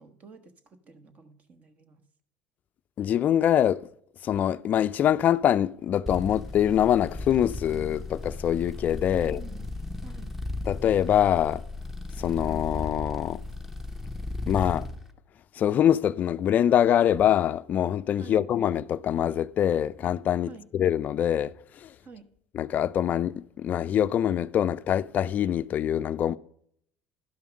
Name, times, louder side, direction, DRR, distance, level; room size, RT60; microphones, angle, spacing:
voice 1, 0.0-2.0 9.1-9.6 10.0-10.3 18.2-18.4 20.5-20.7 22.0-22.3, right 5 dB, 35° right, 1.1 m, -48 dB
voice 2, 3.0-3.8 4.2-9.4 10.7-11.6 12.2-13.4 14.5-14.9 15.6-21.5 21.8-21.9 22.5-26.4, left 10 dB, 40° left, 0.4 m, -24 dB
sound 1, 6.1-15.0, left 2 dB, 5° right, 0.9 m, -36 dB
12.0 x 5.6 x 5.1 m
supercardioid pair, 110°, 4 cm